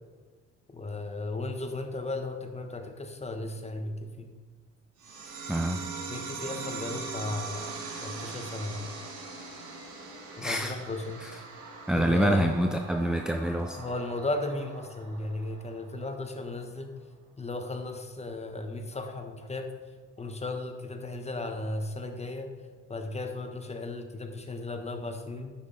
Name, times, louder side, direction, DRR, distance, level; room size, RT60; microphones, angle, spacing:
voice 1, 0.7-4.3 6.1-7.8 8.0-8.9 10.4-11.2 11.9-12.5 13.8-16.9 17.4-19.7 20.2-22.5 22.9-25.5, left 2 dB, 20° left, 5 dB, 1.1 m, -35 dB
sound 1, 5.0-16.0, right 4 dB, 80° right, 1.7 m, -41 dB
voice 2, 5.5-5.8 10.4-10.8 11.2-11.4 11.9-13.8, right 1 dB, ahead, 6 dB, 0.4 m, -27 dB
9.7 x 6.2 x 3.8 m, 1.5 s
cardioid pair, 90°, 30 cm